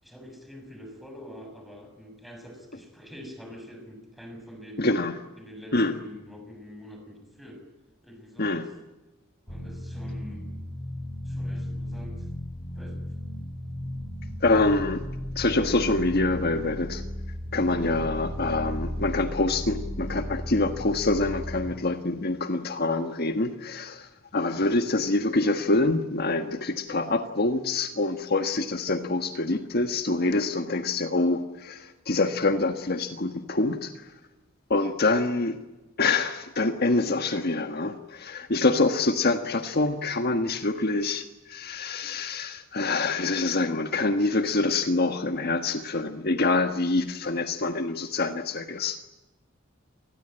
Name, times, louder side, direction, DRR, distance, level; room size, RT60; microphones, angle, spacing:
voice 1, 0.0-4.9 5.4-7.6 8.0-8.7 9.5-10.5 11.2-12.3 12.8-13.1, equal, ahead, 4 dB, 6.8 m, -45 dB
voice 2, 4.8-5.1 5.7-5.9 8.4-8.6 14.4-15.0 15.3-17.0 17.5-34.1 34.7-35.6 36.0-49.0, left 2 dB, 50° left, 7 dB, 1.4 m, -26 dB
sound 1, 9.5-21.7, equal, 35° left, 5.4 m, -35 dB
28.0 x 21.0 x 8.9 m, 1.1 s
head